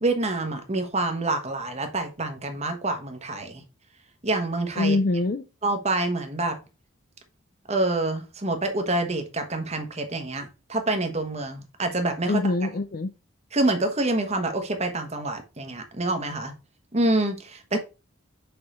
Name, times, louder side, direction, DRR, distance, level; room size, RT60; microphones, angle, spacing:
voice 1, 0.0-3.6 4.2-5.0 5.6-6.6 7.7-12.4 13.5-16.5 16.9-17.8, right 2 dB, 30° right, 1.2 m, -27 dB
voice 2, 4.8-5.4 12.3-13.1 17.7-17.8, left 2 dB, 45° left, 0.5 m, -24 dB
5.6 x 5.2 x 4.3 m
head